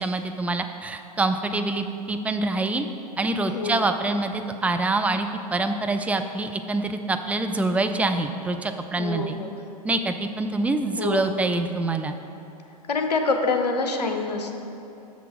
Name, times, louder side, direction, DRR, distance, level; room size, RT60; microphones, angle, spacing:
voice 1, 0.0-2.9 3.2-9.4 9.8-12.1, right 2 dB, 5° right, 7 dB, 0.3 m, -25 dB
voice 2, 3.5-3.8 9.0-9.5 10.9-11.3 12.9-14.5, left 3 dB, 85° left, 4 dB, 0.8 m, -26 dB
6.9 x 6.1 x 4.7 m, 2.8 s
hypercardioid pair, 100°, 20 cm